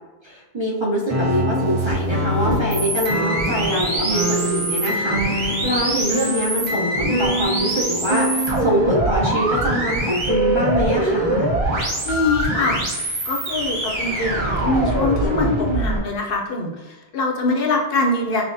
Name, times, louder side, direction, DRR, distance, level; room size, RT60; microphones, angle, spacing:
voice 1, 0.2-11.5, equal, 30° right, -5 dB, 0.7 m, -24 dB
sound 1, 1.1-9.0, right 1 dB, 50° right, 1.6 m, -26 dB
sound 2, 1.2-16.0, right 1 dB, 85° right, 1.3 m, -23 dB
voice 2, 12.0-12.8 13.2-18.4, left 2 dB, 70° left, 1 dB, 0.7 m, -23 dB
5.7 x 2.0 x 2.5 m, 1.1 s
omnidirectional pair, 1.0 m